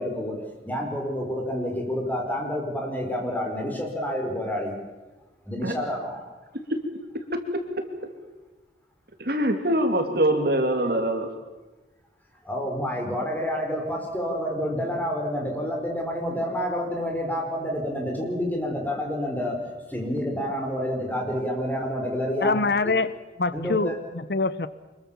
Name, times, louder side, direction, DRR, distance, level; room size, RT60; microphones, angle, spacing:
voice 1, 0.0-4.7 5.5-6.3 12.4-19.6 19.9-22.9 23.5-23.9, equal, 10° left, 1 dB, 4.9 m, -29 dB
voice 2, 9.2-11.3, right 1 dB, 60° right, 5 dB, 3.0 m, -23 dB
voice 3, 22.4-23.1 23.4-24.7, left 3 dB, 65° left, 15 dB, 0.9 m, -24 dB
25.5 x 22.0 x 7.3 m, 1.2 s
head